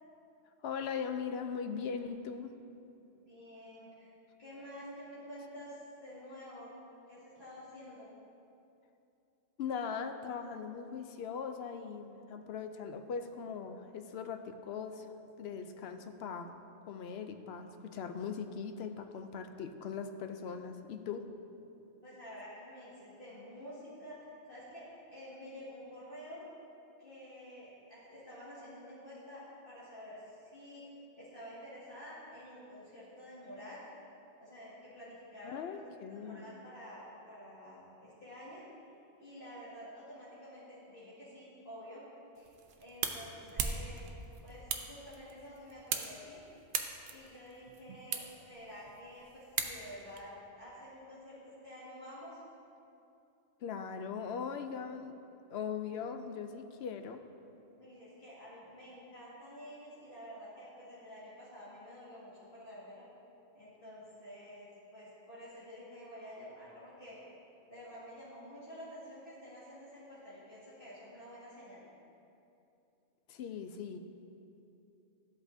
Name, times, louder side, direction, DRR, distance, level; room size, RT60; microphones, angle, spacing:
voice 1, 0.6-2.5 9.6-15.1 15.4-16.5 16.9-21.3 35.4-36.5 53.6-55.1 55.5-57.2 73.3-74.0, left 6 dB, 65° left, 7 dB, 0.7 m, -40 dB
voice 2, 3.1-4.1 4.4-6.7 7.1-8.1 22.0-26.5 27.0-30.9 31.2-33.8 34.4-35.8 36.1-38.7 39.2-42.0 42.4-42.6 42.8-44.0 44.4-46.4 46.8-52.4 57.8-63.0 63.5-67.2 67.7-71.8, equal, 45° left, -11 dB, 2.1 m, -50 dB
sound 1, 42.4-50.2, right 5 dB, 55° right, 0.7 m, -40 dB
12.5 x 8.1 x 2.7 m, 2.7 s
omnidirectional pair, 1.3 m